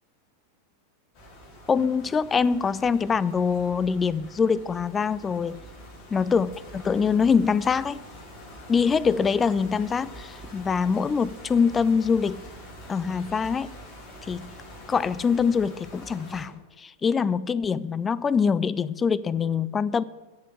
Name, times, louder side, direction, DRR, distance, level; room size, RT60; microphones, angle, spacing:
sound 1, 1.1-16.5, equal, 40° left, 2.7 m, -45 dB
voice 1, 1.7-5.6 6.1-8.0 8.7-12.4 12.9-13.8 14.3-14.5 14.9-20.0, left 6 dB, 20° left, 19 dB, 0.3 m, -24 dB
10.5 x 6.8 x 7.5 m, 1.3 s
figure-of-eight pair, 90°, 0 cm